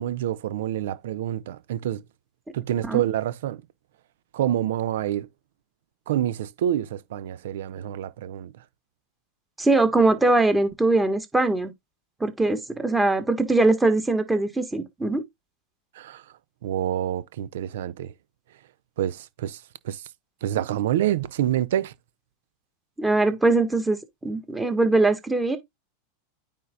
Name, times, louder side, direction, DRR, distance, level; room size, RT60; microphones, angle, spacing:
voice 1, 0.0-2.0 2.5-3.6 4.3-5.3 6.1-8.5 15.9-16.2 16.6-18.1 19.0-19.6 19.8-20.0 20.4-21.9, right 11 dB, 70° right, 0.7 m, -27 dB
voice 2, 9.6-11.7 12.2-15.2 23.0-25.6, right 2 dB, 10° right, 1.6 m, -21 dB
9.3 x 3.6 x 3.8 m
hypercardioid pair, 100°, 0 cm